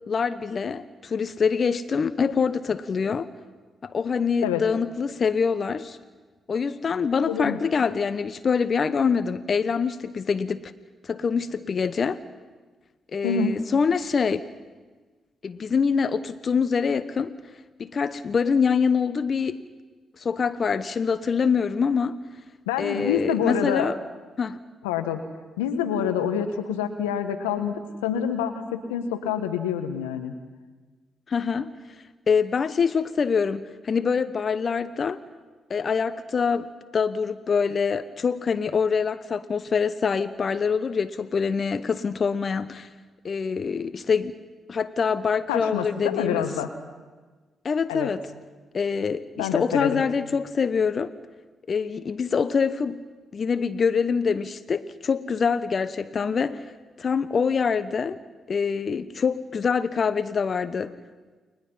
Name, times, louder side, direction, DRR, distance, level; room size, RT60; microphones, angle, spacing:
voice 1, 0.1-3.3 3.8-6.0 6.5-10.7 11.0-12.2 13.1-14.5 15.4-17.3 17.8-19.6 20.2-22.2 22.8-24.0 24.4-24.6 31.3-31.7 32.3-35.2 35.7-42.9 43.2-44.4 44.7-46.5 47.6-48.2 48.7-51.1 51.7-53.0 53.3-56.7 57.0-58.2 58.5-60.9, left 5 dB, 50° left, 13 dB, 1.0 m, -25 dB
voice 2, 7.2-7.6 13.2-13.5 22.7-23.9 24.8-25.2 25.6-30.3 45.5-46.7 47.9-48.1 49.4-50.0, left 8 dB, 90° left, 7 dB, 1.4 m, -27 dB
30.0 x 22.5 x 5.6 m, 1.3 s
hypercardioid pair, 40°, 0 cm